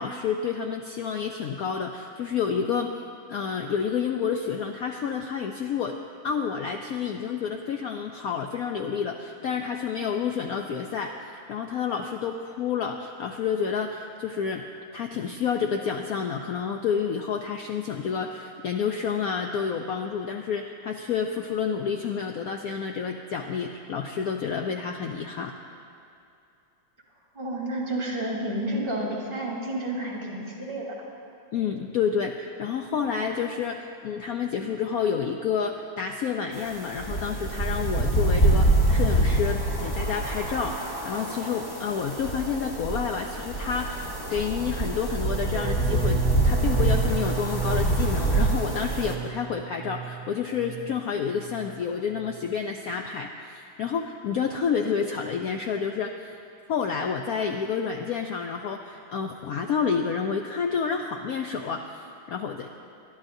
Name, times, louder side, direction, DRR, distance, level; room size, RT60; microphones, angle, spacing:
voice 1, 0.0-2.9 3.3-6.0 6.2-11.2 11.5-14.6 14.9-25.5 31.5-56.1 56.7-62.7, left 6 dB, 80° left, 3 dB, 0.8 m, -29 dB
voice 2, 27.3-30.9, right 1 dB, 25° right, -5 dB, 3.1 m, -30 dB
sound 1, 36.5-49.1, right 1 dB, 25° left, 0.4 m, -25 dB
sound 2, 45.1-51.1 51.4-51.9 52.1-52.5, right 9 dB, 80° right, 1.4 m, -34 dB
24.0 x 11.5 x 2.7 m, 2.6 s
omnidirectional pair, 2.2 m